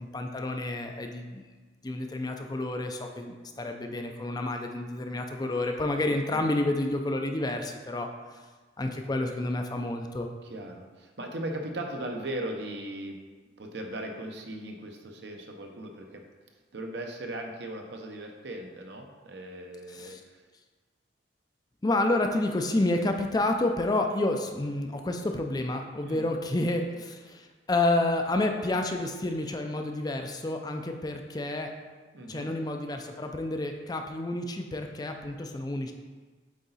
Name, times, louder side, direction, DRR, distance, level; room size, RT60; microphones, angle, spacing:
voice 1, 0.0-1.4 1.8-8.1 8.8-10.3 19.9-20.2 21.8-31.7 32.3-35.9, left 2 dB, 20° left, 4 dB, 0.4 m, -29 dB
voice 2, 10.4-13.2 13.6-16.2 16.7-20.4 26.0-26.2 32.1-32.5, right 1 dB, 65° right, 3 dB, 0.8 m, -38 dB
8.3 x 3.9 x 4.1 m, 1.4 s
head